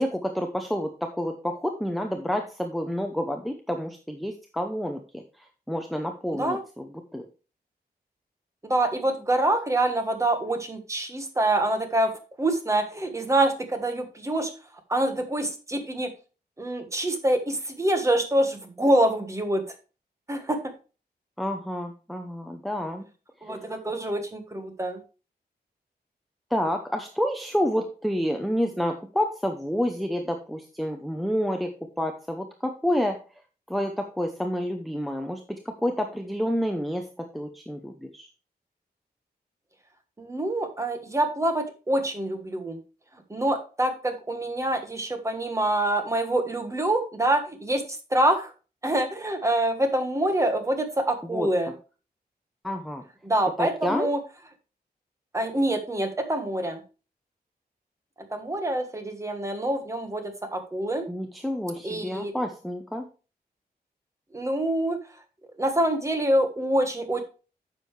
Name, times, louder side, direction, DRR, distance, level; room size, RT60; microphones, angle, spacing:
voice 1, 0.0-7.2 21.4-23.1 23.4-23.6 26.5-31.7 32.0-33.2 33.7-38.3 51.2-51.5 52.6-53.0 53.6-54.1 61.1-63.0, equal, ahead, 4 dB, 0.7 m, -29 dB
voice 2, 8.6-12.1 12.4-14.5 14.9-16.1 16.6-19.6 20.3-20.6 23.4-25.0 40.2-42.8 43.3-47.8 48.1-48.5 48.8-51.7 53.2-54.2 55.3-56.8 58.3-60.2 60.5-61.1 61.8-62.3 64.3-65.0 65.6-67.2, right 1 dB, 20° right, 6 dB, 1.3 m, -25 dB
9.6 x 6.6 x 3.2 m, 0.34 s
wide cardioid pair, 180°, 17 cm